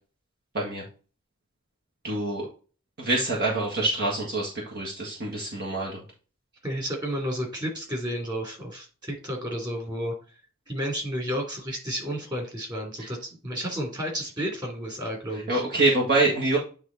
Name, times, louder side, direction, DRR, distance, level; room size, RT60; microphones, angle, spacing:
voice 1, 0.5-0.8 2.0-2.5 3.0-6.0 15.5-16.6, right 2 dB, 50° right, -3 dB, 1.7 m, -25 dB
voice 2, 6.6-10.1 10.7-15.6, equal, 20° right, 1 dB, 3.1 m, -32 dB
9.3 x 3.6 x 4.1 m, 0.36 s
head